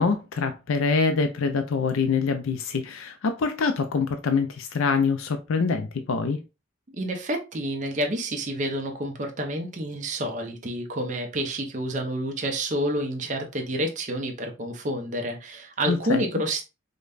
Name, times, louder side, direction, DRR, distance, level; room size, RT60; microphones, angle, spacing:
voice 1, 0.0-6.4 15.9-16.2, left 5 dB, 90° left, 0.5 m, -25 dB
voice 2, 7.0-16.6, right 1 dB, 40° right, 0.7 m, -29 dB
5.0 x 2.2 x 2.4 m
head